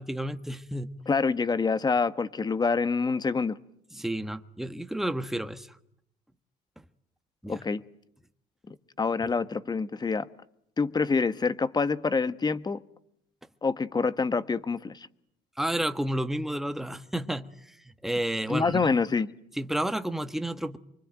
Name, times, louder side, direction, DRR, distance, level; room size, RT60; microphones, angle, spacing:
voice 1, 0.0-0.9 3.9-5.8 7.4-7.6 15.6-17.8 18.0-18.9 19.6-20.8, right 1 dB, ahead, 1.4 m, -31 dB
voice 2, 1.1-3.6 7.5-7.8 8.7-10.3 10.8-12.8 13.6-15.1 18.5-19.3, left 4 dB, 25° left, 1.3 m, -26 dB
25.0 x 25.0 x 9.1 m
cardioid pair, 110°, 17 cm